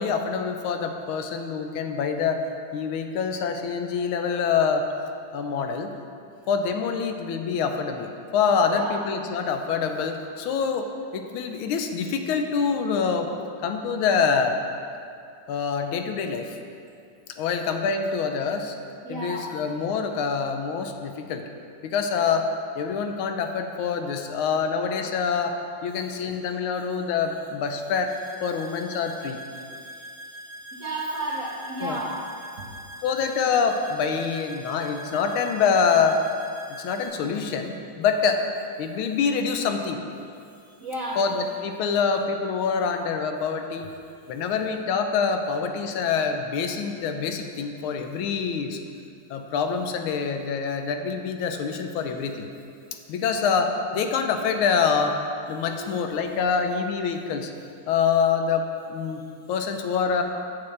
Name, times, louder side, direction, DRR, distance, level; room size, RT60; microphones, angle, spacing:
voice 1, 0.0-4.9 5.3-5.9 6.5-10.9 11.1-13.3 13.6-14.6 15.5-16.6 17.4-18.7 19.1-21.4 21.8-25.6 25.8-28.1 28.4-29.4 31.8-32.0 33.0-36.2 36.7-38.4 38.8-40.0 41.2-43.9 44.3-48.8 49.3-52.5 53.1-55.2 55.5-57.5 57.9-59.2 59.5-60.2, left 6 dB, 80° left, 5 dB, 1.4 m, -25 dB
voice 2, 8.7-9.0 19.0-19.5 29.7-30.1 30.7-32.1 32.6-32.7 40.7-41.3 55.8-56.0, right 1 dB, 65° right, -5 dB, 0.8 m, -32 dB
sound 1, 28.1-37.1, equal, 60° left, 1.8 m, -42 dB
8.3 x 7.5 x 3.2 m, 2.5 s
omnidirectional pair, 2.4 m